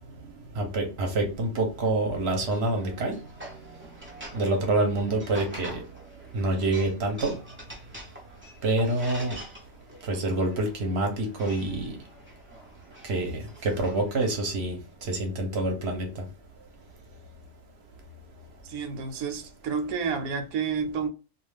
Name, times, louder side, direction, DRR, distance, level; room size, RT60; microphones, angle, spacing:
voice 1, 0.5-3.2 4.3-5.8 6.3-7.3 8.6-9.4 10.0-12.0 13.0-16.2, right 2 dB, 55° right, 0.9 m, -27 dB
sound 1, 2.4-14.5, right 1 dB, 20° right, 0.3 m, -46 dB
voice 2, 18.6-21.1, right 6 dB, 85° right, 1.1 m, -30 dB
2.4 x 2.4 x 3.2 m
omnidirectional pair, 1.5 m